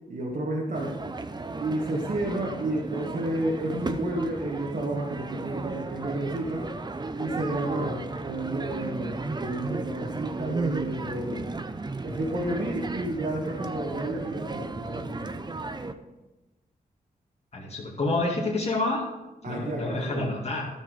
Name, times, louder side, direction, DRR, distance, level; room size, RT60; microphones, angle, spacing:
voice 1, 0.1-1.0 1.6-6.7 7.2-11.5 12.0-15.4 19.4-20.3, right 1 dB, 60° right, -3 dB, 1.8 m, -31 dB
sound 1, 0.7-15.9, right 3 dB, 25° right, 0.7 m, -34 dB
voice 2, 17.5-19.0 19.4-20.6, left 2 dB, 40° left, -4 dB, 2.3 m, -28 dB
13.0 x 6.5 x 5.1 m, 1.1 s
cardioid pair, 70°, 16 cm